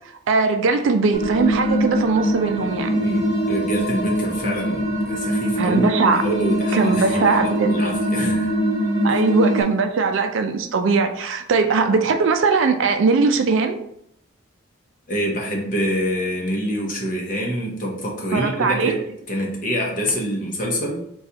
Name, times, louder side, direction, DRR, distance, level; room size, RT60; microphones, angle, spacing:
voice 1, 0.3-2.9 5.6-6.2 6.7-7.7 9.0-13.8 18.3-19.0, right 4 dB, 70° right, 0.4 m, -20 dB
sound 1, 1.1-9.6, equal, 20° right, 1.0 m, -23 dB
voice 2, 3.0-8.5 9.1-9.2 15.1-21.0, equal, 40° left, 0.8 m, -26 dB
4.1 x 2.3 x 3.9 m
head